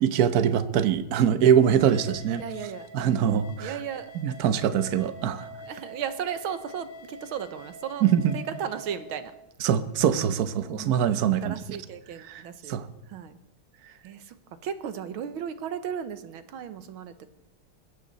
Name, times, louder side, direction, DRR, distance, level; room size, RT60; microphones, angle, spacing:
voice 1, 0.0-2.4 2.9-3.8 4.1-5.5 8.0-8.4 9.6-11.5 12.3-12.4 12.7-12.9, right 9 dB, 55° right, 12 dB, 1.2 m, -23 dB
sound 1, 1.6-9.3, equal, 90° left, 2.8 m, -45 dB
voice 2, 2.4-2.9 3.5-4.1 5.6-8.0 8.3-9.3 10.6-11.1 11.4-12.8 13.1-13.4 14.0-14.3 14.6-17.3, right 8 dB, 75° right, 11 dB, 1.8 m, -35 dB
20.5 x 15.5 x 4.1 m, 0.89 s
omnidirectional pair, 2.3 m